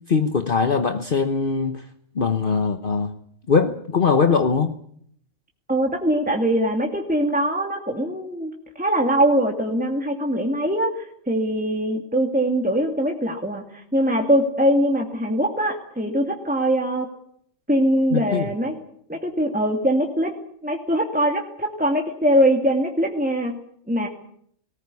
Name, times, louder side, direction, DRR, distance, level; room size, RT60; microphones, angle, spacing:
voice 1, 0.0-1.9 2.1-3.1 3.5-4.7 18.1-18.5, left 5 dB, 45° left, 7 dB, 1.2 m, -21 dB
voice 2, 5.7-17.1 17.7-18.8 19.1-20.3 20.6-23.6 23.9-24.1, right 1 dB, 5° right, 1 dB, 2.3 m, -22 dB
19.0 x 19.0 x 9.7 m, 0.67 s
omnidirectional pair, 1.3 m